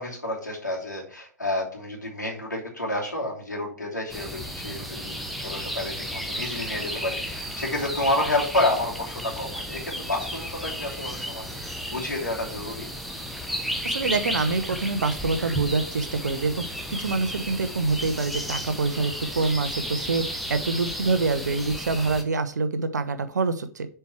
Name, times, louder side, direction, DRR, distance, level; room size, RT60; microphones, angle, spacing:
voice 1, 0.0-12.9, left 1 dB, 90° left, -3 dB, 2.8 m, -30 dB
sound 1, 4.1-22.2, equal, ahead, 0.9 m, -33 dB
voice 2, 13.8-23.9, right 3 dB, 75° right, 11 dB, 0.8 m, -26 dB
6.8 x 4.6 x 4.5 m, 0.42 s
figure-of-eight pair, 110°, 10 cm